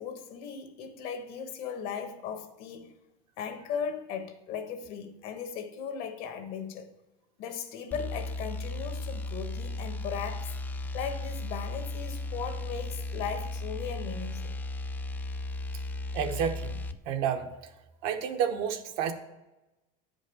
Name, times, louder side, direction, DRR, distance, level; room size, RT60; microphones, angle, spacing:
voice 1, 0.0-2.9 3.4-6.9 7.4-10.5 10.9-14.5, left 6 dB, 55° left, 1.2 m, -37 dB
sound 1, 7.9-17.0, left 2 dB, 10° left, 0.3 m, -35 dB
voice 2, 16.1-16.8 17.1-17.5 18.0-19.1, right 8 dB, 60° right, 1.0 m, -30 dB
8.4 x 5.2 x 5.3 m
supercardioid pair, 135°, 17 cm